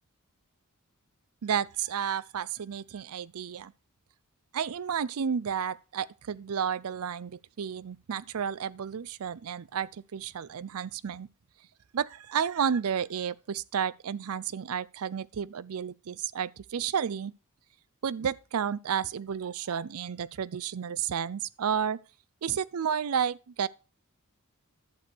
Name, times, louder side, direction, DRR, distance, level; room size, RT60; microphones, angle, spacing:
voice 1, 1.4-3.7 4.5-11.3 11.9-17.3 18.0-22.0 22.4-23.7, right 7 dB, 70° right, 0.5 m, -31 dB
11.5 x 6.8 x 4.4 m
head